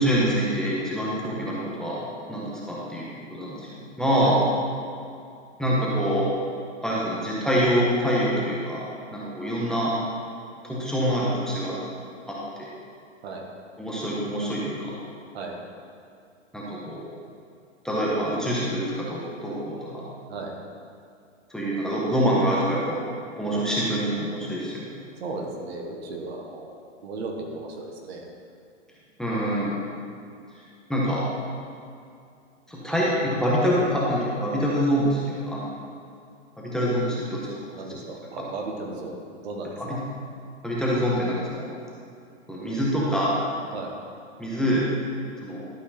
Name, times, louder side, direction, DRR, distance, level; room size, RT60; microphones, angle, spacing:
voice 1, 0.0-4.4 5.6-6.3 6.8-8.8 9.1-9.9 10.6-11.8 12.3-12.7 13.8-14.9 16.5-17.0 17.8-20.1 21.5-23.0 23.4-24.9 29.2-29.8 30.9-31.2 32.7-35.6 36.6-37.5 39.8-40.0 40.6-41.7 42.5-43.4 44.4-44.9 45.4-45.6, equal, ahead, -7 dB, 1.4 m, -25 dB
voice 2, 25.2-28.3 37.7-40.0 43.7-44.0, right 3 dB, 55° right, 1 dB, 1.6 m, -35 dB
12.0 x 5.2 x 4.3 m, 2.5 s
hypercardioid pair, 130°, 37 cm